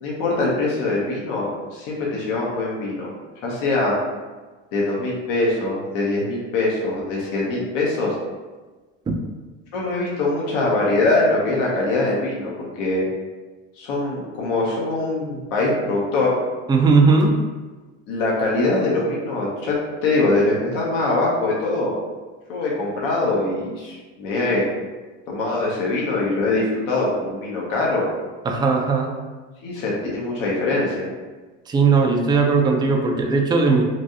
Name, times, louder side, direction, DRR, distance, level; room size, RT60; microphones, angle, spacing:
voice 1, 0.0-3.1 3.4-4.0 4.7-8.1 9.7-13.0 13.8-16.3 18.1-21.9 22.5-24.6 25.3-28.1 29.6-31.1, left 2 dB, 65° left, -4 dB, 0.9 m, -23 dB
voice 2, 16.7-17.4 28.5-29.1 31.7-33.8, right 4 dB, 10° right, 2 dB, 0.3 m, -18 dB
3.1 x 2.6 x 2.7 m, 1.3 s
hypercardioid pair, 75°, 37 cm